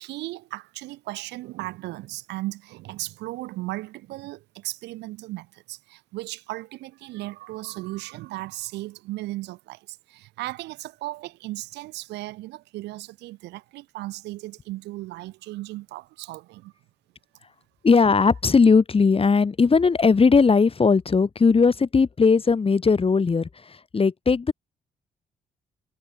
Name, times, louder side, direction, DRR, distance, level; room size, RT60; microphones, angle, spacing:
voice 1, 0.0-16.7, right 18 dB, 75° right, 3.1 m, -36 dB
voice 2, 17.8-24.5, left 5 dB, 30° left, 1.5 m, -19 dB
hypercardioid pair, 45°, 18 cm